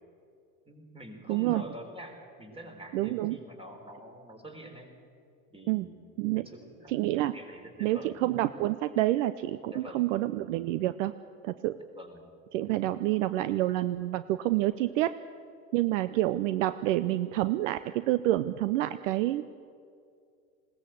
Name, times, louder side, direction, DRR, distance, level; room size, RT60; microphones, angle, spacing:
voice 1, 0.7-4.9 5.5-6.0 6.3-6.9 7.3-8.1 9.7-10.1 11.9-12.3, equal, 15° right, 4 dB, 4.0 m, -46 dB
voice 2, 1.3-1.6 2.9-3.4 5.7-5.9 6.2-6.5 6.9-7.4 7.8-11.1 11.4-11.8 12.5-15.1 15.7-19.5, right 15 dB, 60° right, 14 dB, 0.7 m, -28 dB
20.5 x 17.5 x 7.9 m, 2.4 s
hypercardioid pair, 85°, 43 cm